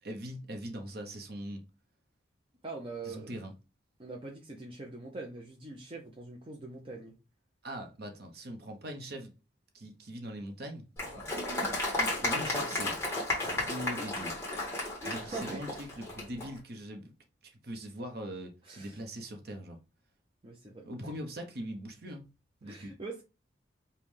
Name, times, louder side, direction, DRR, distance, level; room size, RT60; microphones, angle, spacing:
voice 1, 0.0-1.6 3.0-3.5 7.6-9.3 9.7-10.9 12.0-13.0 13.4-14.3 15.0-17.1 17.4-19.8 20.9-22.3 22.6-22.9, equal, 55° right, 0.8 m, -41 dB
voice 2, 2.6-3.3 4.0-7.1 14.0-14.3 15.0-15.7 18.6-19.0 20.4-20.9 22.6-23.2, right 3 dB, 30° right, 0.6 m, -43 dB
Applause, 11.0-16.5, left 2 dB, 15° left, 1.3 m, -33 dB
5.3 x 2.3 x 3.2 m
head